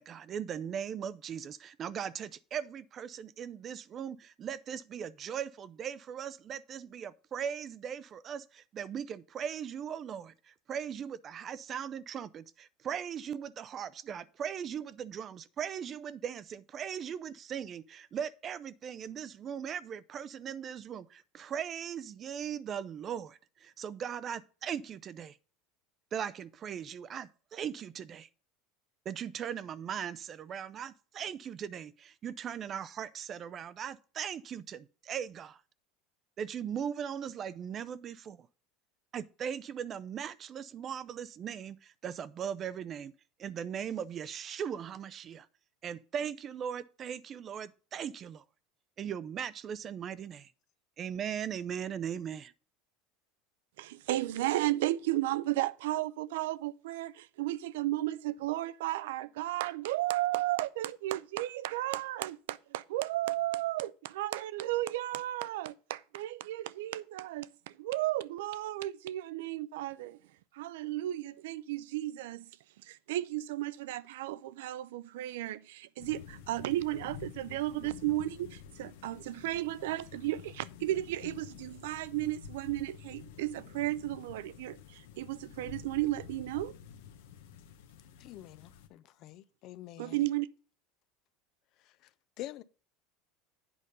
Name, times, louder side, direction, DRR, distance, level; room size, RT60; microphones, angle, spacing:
voice 1, 0.0-25.4 26.1-28.3 29.1-35.6 36.4-38.5 39.1-43.1 43.4-45.5 45.8-48.4 49.0-50.5 51.0-52.5, right 8 dB, 30° right, 0.4 m, -39 dB
voice 2, 53.8-67.5 67.8-70.2 70.5-72.5 72.9-86.8 90.0-90.5, right 15 dB, 85° right, 0.5 m, -34 dB
sound 1, 76.0-88.9, left 8 dB, 90° left, 1.0 m, -50 dB
voice 3, 88.2-90.2 92.4-92.6, left 14 dB, 50° left, 0.4 m, -46 dB
8.5 x 5.2 x 5.4 m
supercardioid pair, 145°, 0 cm